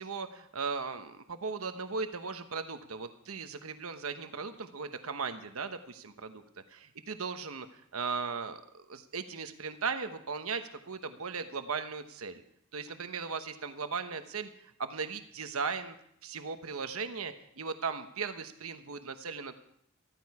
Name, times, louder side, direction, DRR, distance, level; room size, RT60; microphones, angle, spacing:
voice 1, 0.0-6.4 6.7-12.4 12.7-16.0 16.2-19.6, right 5 dB, 80° right, 8 dB, 1.1 m, -37 dB
14.0 x 14.0 x 4.8 m, 0.72 s
head